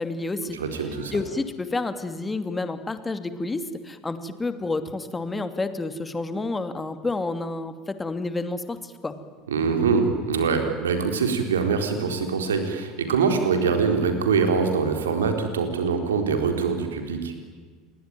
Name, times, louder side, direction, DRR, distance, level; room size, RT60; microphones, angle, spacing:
voice 1, 0.0-0.6 1.1-9.1, left 3 dB, 15° left, 10 dB, 2.6 m, -29 dB
voice 2, 0.5-1.2 9.5-17.3, right 5 dB, 75° right, 5 dB, 4.2 m, -24 dB
28.5 x 22.5 x 9.2 m, 1.5 s
figure-of-eight pair, 70°, 0 cm